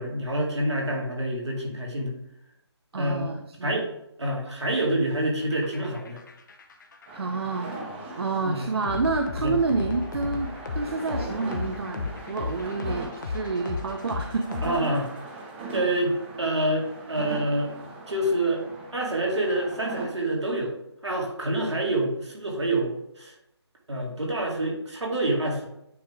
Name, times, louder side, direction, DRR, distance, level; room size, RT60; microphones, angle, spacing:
voice 1, 0.0-2.2 3.0-3.3 3.6-3.9 4.2-6.2 8.4-8.6 9.4-9.5 14.6-15.1 15.7-17.7 18.1-18.6 18.9-20.7 21.0-23.3 23.9-25.7, right 1 dB, 80° right, -1 dB, 2.1 m, -27 dB
voice 2, 2.9-3.9 7.1-7.7 8.2-14.6, right 4 dB, 60° right, 5 dB, 0.5 m, -29 dB
sound 1, 5.4-15.2, left 4 dB, 45° left, 0.7 m, -35 dB
sound 2, 7.1-20.1, right 3 dB, 25° right, 1.2 m, -40 dB
9.2 x 3.2 x 3.5 m, 0.82 s
figure-of-eight pair, 150°, 14 cm